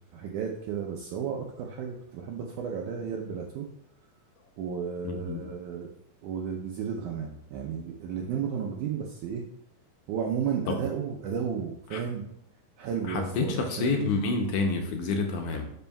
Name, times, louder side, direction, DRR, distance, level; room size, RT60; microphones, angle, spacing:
voice 1, 0.1-3.7 4.6-5.9 6.2-9.4 10.1-12.2 12.8-14.1, right 7 dB, 80° right, 1 dB, 1.8 m, -33 dB
voice 2, 5.0-5.5 10.7-10.8 11.9-12.0 13.1-15.7, left 3 dB, 80° left, 3 dB, 1.9 m, -28 dB
12.0 x 5.4 x 2.2 m, 0.81 s
omnidirectional pair, 4.1 m